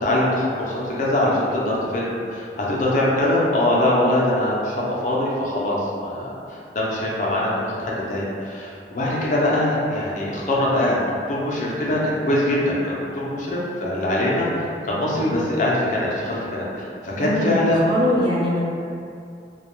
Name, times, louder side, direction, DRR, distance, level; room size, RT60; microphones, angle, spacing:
voice 1, 0.0-4.7 5.0-6.3 6.7-11.0 11.3-14.5 14.8-17.9, left 1 dB, 45° left, -5 dB, 0.4 m, -22 dB
voice 2, 17.2-17.6 17.9-18.6, left 1 dB, 25° right, -6 dB, 0.3 m, -21 dB
2.2 x 2.1 x 3.0 m, 2.5 s
head